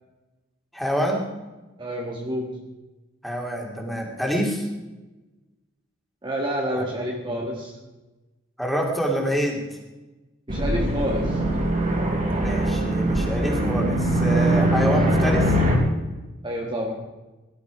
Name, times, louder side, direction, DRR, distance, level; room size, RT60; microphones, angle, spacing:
voice 1, 0.7-1.3 3.2-4.7 6.7-6.8 7.3-7.5 8.6-9.6 12.3-15.6, equal, ahead, 0 dB, 2.9 m, -26 dB
voice 2, 1.8-2.6 6.2-7.8 10.5-11.4 16.4-17.1, equal, 25° right, 0 dB, 1.6 m, -28 dB
sound 1, 10.5-15.8, right 1 dB, 40° right, 3.5 m, -22 dB
18.0 x 12.0 x 4.9 m, 1.1 s
head